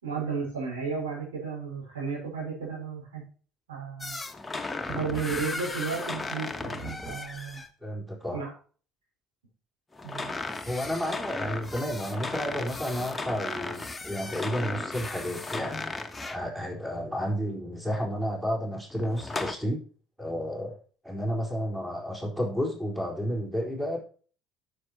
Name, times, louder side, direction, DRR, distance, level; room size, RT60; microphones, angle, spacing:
voice 1, 0.0-3.2 3.7-4.2 4.9-7.6 8.3-8.5 10.0-10.3, right 5 dB, 75° right, -3 dB, 5.2 m, -33 dB
sound 1, 4.0-7.7 9.9-16.5 18.9-19.6, left 3 dB, 15° left, 1.2 m, -35 dB
voice 2, 7.8-8.4 10.7-19.8 20.2-20.7 21.0-24.0, equal, 10° right, -1 dB, 4.3 m, -31 dB
9.5 x 7.5 x 4.4 m, 0.41 s
figure-of-eight pair, 60°, 0 cm